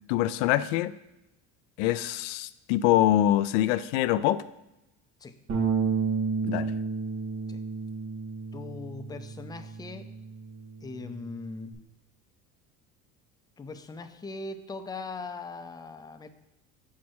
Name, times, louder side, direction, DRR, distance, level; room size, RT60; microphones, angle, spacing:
voice 1, 0.1-0.9 1.8-4.4 6.4-6.7, left 13 dB, 90° left, 14 dB, 0.5 m, -24 dB
Bass guitar, 5.5-11.7, right 5 dB, 40° right, 2.5 m, -32 dB
voice 2, 8.5-10.1 10.8-11.7 13.6-16.3, left 3 dB, 10° left, 7 dB, 0.5 m, -40 dB
7.2 x 4.8 x 4.4 m, 0.92 s
supercardioid pair, 110°, 34 cm